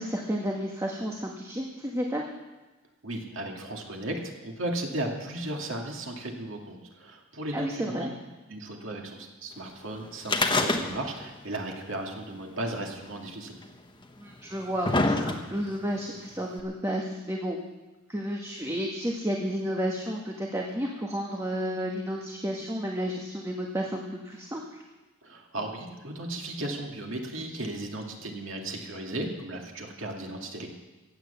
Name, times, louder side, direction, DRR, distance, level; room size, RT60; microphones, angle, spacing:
voice 1, 0.0-2.2 7.5-8.1 14.2-17.6 18.1-24.8, equal, 15° right, 0 dB, 1.4 m, -32 dB
voice 2, 3.0-4.1 4.4-8.1 8.5-13.5 25.2-30.7, right 1 dB, 65° right, 1 dB, 2.3 m, -35 dB
sound 1, 10.2-11.3 11.5-11.6 12.6-12.7 13.6-13.7 14.4-15.7 16.6-16.7, left 2 dB, 20° left, 1.1 m, -25 dB
15.5 x 9.4 x 8.1 m, 1.2 s
head